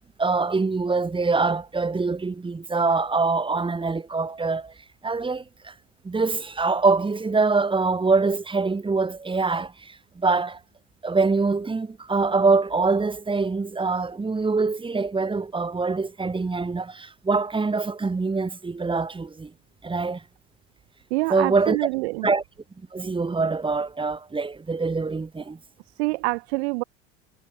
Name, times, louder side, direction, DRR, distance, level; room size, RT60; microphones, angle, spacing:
voice 1, 0.2-4.7 5.0-5.7 6.0-10.6 11.0-19.5 19.8-20.2 21.3-21.9 22.2-22.4 22.9-25.6, right 4 dB, 15° right, 5.0 m, -24 dB
voice 2, 21.1-22.3 26.0-26.8, right 25 dB, 75° right, 3.3 m, -26 dB
supercardioid pair, 105°, 33 cm